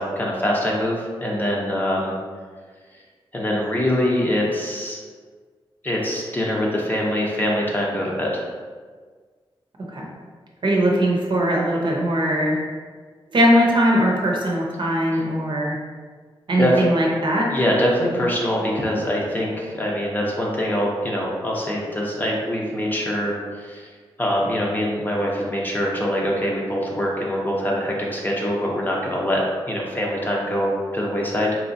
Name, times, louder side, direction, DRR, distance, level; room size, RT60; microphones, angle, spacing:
voice 1, 0.0-2.2 3.3-5.0 5.8-8.5 15.1-15.2 16.6-16.9 17.5-23.9 24.2-29.4 29.7-31.5, equal, 20° left, -3 dB, 0.7 m, -24 dB
voice 2, 10.6-12.6 13.3-15.7 16.5-17.5, equal, 55° right, -2 dB, 0.8 m, -20 dB
4.4 x 3.0 x 2.6 m, 1.5 s
wide cardioid pair, 120°, 10 cm